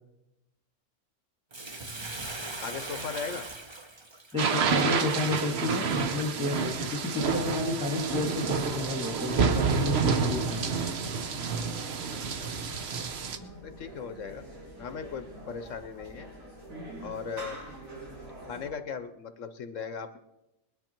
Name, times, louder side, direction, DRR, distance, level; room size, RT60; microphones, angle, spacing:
Bathtub (filling or washing), 1.5-6.0 6.6-6.7, right 2 dB, 25° right, 0.9 m, -40 dB
voice 1, 2.6-3.5 12.1-12.5 13.6-14.4 14.8-16.3 17.0-17.6 18.5-20.2, left 6 dB, 70° left, 10 dB, 1.1 m, -38 dB
voice 2, 4.3-10.6, left 2 dB, 5° right, 3 dB, 1.9 m, -31 dB
sound 1, 4.4-13.4, right 5 dB, 55° right, 1.1 m, -29 dB
sound 2, 7.9-18.7, right 1 dB, 85° right, 4.0 m, -45 dB
21.0 x 10.5 x 4.5 m, 0.94 s
omnidirectional pair, 1.4 m